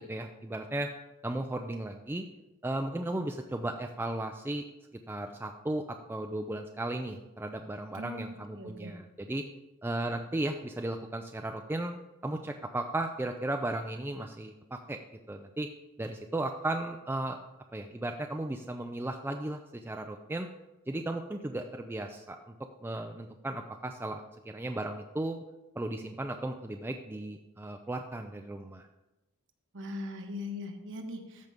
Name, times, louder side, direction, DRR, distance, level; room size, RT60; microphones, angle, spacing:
voice 1, 0.1-0.9 1.2-2.3 2.6-4.6 5.1-9.4 9.8-15.0 15.3-15.7 16.0-17.4 17.7-20.5 20.9-22.5 22.8-25.4 25.8-28.9, right 1 dB, 10° right, 4 dB, 0.4 m, -35 dB
voice 2, 7.9-8.9 29.7-31.5, left 2 dB, 60° right, 4 dB, 1.1 m, -40 dB
13.5 x 5.2 x 3.5 m, 1.0 s
head